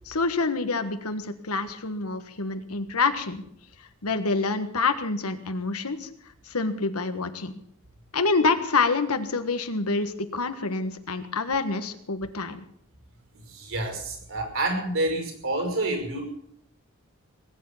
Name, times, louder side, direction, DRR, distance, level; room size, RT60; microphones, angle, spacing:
voice 1, 0.1-3.4 4.0-6.1 6.5-7.5 8.1-12.6, left 4 dB, 85° left, 9 dB, 1.5 m, -27 dB
voice 2, 13.3-16.2, right 2 dB, 65° right, 4 dB, 5.4 m, -28 dB
20.0 x 9.3 x 7.3 m, 0.68 s
head